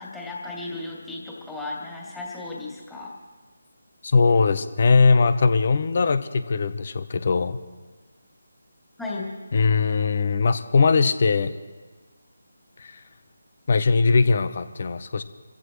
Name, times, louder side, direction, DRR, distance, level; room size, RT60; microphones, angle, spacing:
voice 1, 0.0-3.1 9.0-9.4, left 2 dB, 5° left, -5 dB, 2.7 m, -35 dB
voice 2, 4.0-7.6 9.5-11.5 12.8-13.0 13.7-15.2, left 4 dB, 45° left, 12 dB, 0.9 m, -20 dB
27.0 x 15.0 x 3.2 m, 1.3 s
figure-of-eight pair, 155°, 0 cm